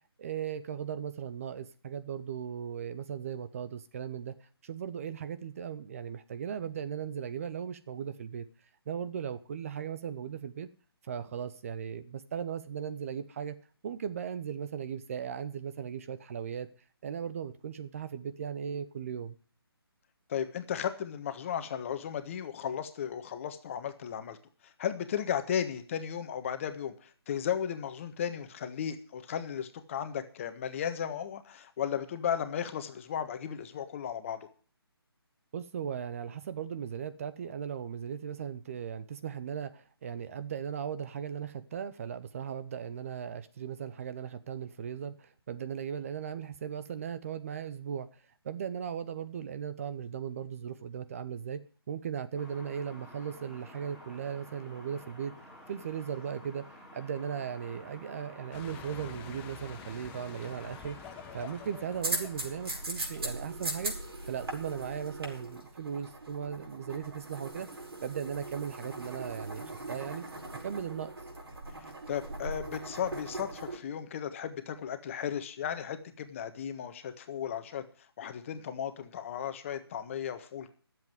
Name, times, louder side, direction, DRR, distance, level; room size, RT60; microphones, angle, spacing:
voice 1, 0.2-8.5 8.9-10.7 11.0-13.6 13.8-16.7 17.0-19.4 35.5-55.3 55.7-61.0 61.3-63.9 64.3-67.7 68.0-70.2 70.6-71.1, right 8 dB, 35° right, 13 dB, 0.7 m, -37 dB
voice 2, 20.3-24.4 24.6-34.5 72.1-77.8 78.2-80.7, left 8 dB, 30° left, 9 dB, 1.4 m, -35 dB
sound 1, 52.3-62.8, left 1 dB, 5° right, 3.0 m, -51 dB
sound 2, 58.5-65.3, left 9 dB, 15° left, 0.8 m, -50 dB
sound 3, 62.0-73.8, right 2 dB, 70° right, 5.1 m, -40 dB
12.0 x 7.8 x 9.3 m, 0.42 s
figure-of-eight pair, 145°, 13 cm